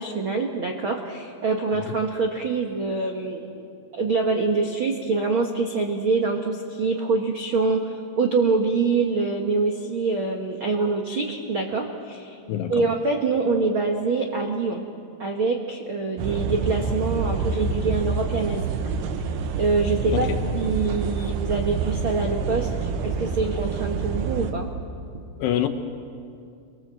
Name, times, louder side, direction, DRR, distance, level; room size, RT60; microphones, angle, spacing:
voice 1, 0.0-3.6 3.9-12.4 12.7-14.8 15.2-18.7 19.6-20.3 20.5-24.7 25.1-25.2, right 4 dB, 55° right, 2 dB, 1.4 m, -25 dB
voice 2, 12.5-12.8 20.1-20.4 25.4-25.7, left 11 dB, 80° left, 6 dB, 3.2 m, -25 dB
sound 1, 16.2-24.5, right 5 dB, 80° right, 3.4 m, -27 dB
29.5 x 23.5 x 7.7 m, 2.4 s
omnidirectional pair, 4.8 m